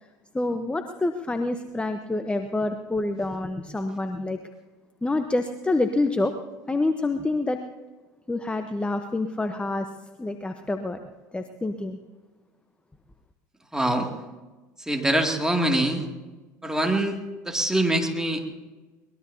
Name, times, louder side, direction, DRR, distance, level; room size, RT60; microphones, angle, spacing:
voice 1, 0.3-4.4 5.0-6.3 6.7-7.6 8.3-9.9 10.2-11.0 11.3-12.0, left 2 dB, 10° left, 7 dB, 1.0 m, -27 dB
voice 2, 13.7-14.1 14.8-16.1 16.6-18.5, right 1 dB, 5° right, 2 dB, 2.4 m, -24 dB
23.0 x 20.5 x 2.8 m, 1.3 s
hypercardioid pair, 75°, 9 cm